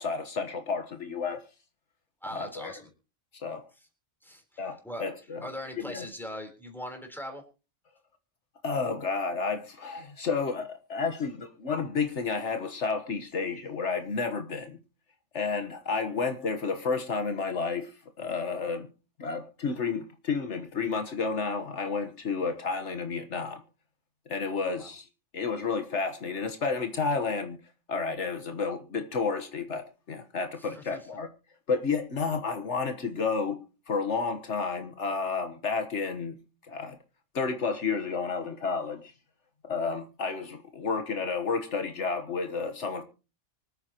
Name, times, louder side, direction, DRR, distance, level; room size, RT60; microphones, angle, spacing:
voice 1, 0.0-1.4 2.3-2.7 3.4-3.6 4.6-5.4 5.8-6.0 8.6-14.8 15.3-18.9 19.2-23.6 24.3-25.1 25.3-27.6 27.9-31.3 31.7-36.4 36.7-37.0 37.3-39.1 39.7-43.0, left 4 dB, 70° left, 1.6 m, -31 dB
voice 2, 2.2-2.9 4.2-5.0 5.4-7.4 24.7-24.9 30.6-31.1, equal, ahead, 3.7 m, -41 dB
25.5 x 8.8 x 3.0 m
omnidirectional pair, 1.3 m